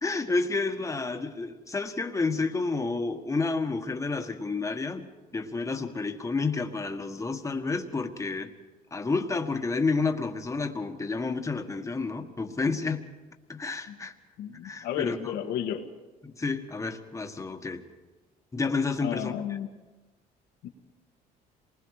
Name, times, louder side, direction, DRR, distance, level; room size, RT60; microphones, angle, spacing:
voice 1, 0.0-5.0 5.3-8.5 8.9-13.0 13.5-14.1 14.6-15.3 16.2-17.8 18.5-19.4, left 3 dB, 20° left, 5 dB, 1.7 m, -30 dB
voice 2, 14.4-15.9 19.0-19.7 20.6-20.7, left 10 dB, 80° left, 3 dB, 1.8 m, -33 dB
27.0 x 20.5 x 4.9 m, 1.2 s
cardioid pair, 110°, 17 cm